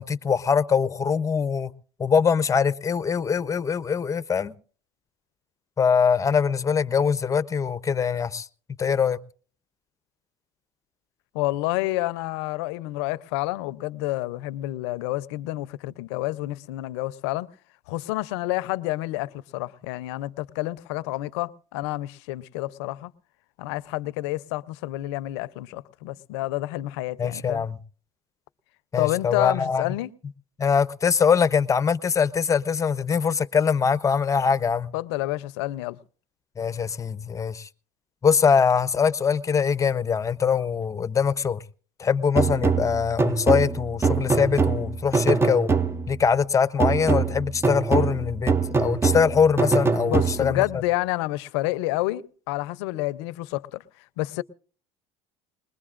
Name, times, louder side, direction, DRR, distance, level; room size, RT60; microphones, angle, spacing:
voice 1, 0.0-1.7 2.0-4.5 5.8-8.5 8.8-9.2 27.2-27.8 28.9-29.8 30.6-34.9 36.6-37.7 38.2-41.6 42.0-45.7 46.1-48.5 48.8-50.6, left 6 dB, 25° left, 0.7 m, -23 dB
voice 2, 11.3-17.5 17.9-23.1 23.6-27.6 29.0-30.1 34.9-36.0 50.1-53.8 54.2-54.4, left 18 dB, 85° left, 0.6 m, -29 dB
sound 1, 42.4-46.2 46.8-50.7, right 4 dB, 20° right, 0.6 m, -24 dB
21.0 x 21.0 x 2.5 m
supercardioid pair, 95°, 14 cm